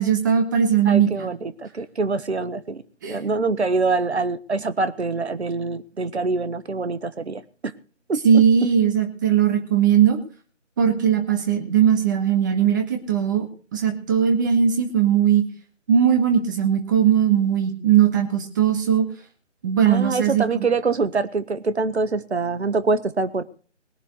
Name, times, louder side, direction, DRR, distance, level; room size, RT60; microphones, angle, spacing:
voice 1, 0.0-1.3 3.0-3.2 8.2-10.2 10.8-13.5 13.7-15.4 15.9-19.0 19.6-20.7, right 8 dB, 15° right, 5 dB, 1.6 m, -19 dB
voice 2, 0.9-7.7 8.1-8.4 19.8-23.4, right 3 dB, 60° right, 13 dB, 1.5 m, -25 dB
21.0 x 7.3 x 6.4 m, 0.41 s
figure-of-eight pair, 160°, 37 cm